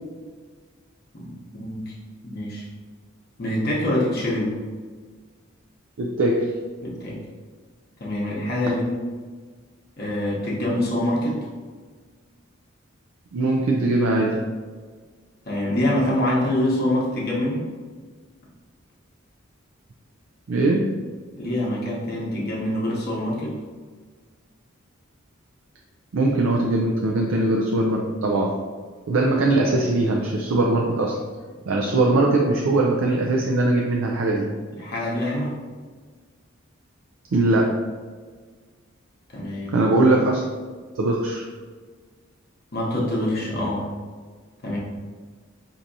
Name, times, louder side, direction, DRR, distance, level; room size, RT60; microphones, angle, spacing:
voice 1, 1.1-1.9 2.2-2.6 3.4-4.6 6.8-7.2 8.0-9.0 10.0-11.4 15.5-17.7 21.4-23.5 34.8-35.5 39.3-39.8 42.7-43.9 44.6-44.8, left 1 dB, 50° left, -5 dB, 0.8 m, -25 dB
voice 2, 6.0-6.5 13.3-14.4 20.5-21.0 26.1-28.6 29.1-31.2 31.7-34.5 37.3-37.8 39.7-40.4 41.0-41.5, right 2 dB, 75° right, 0 dB, 0.4 m, -21 dB
4.5 x 2.7 x 2.6 m, 1.5 s
head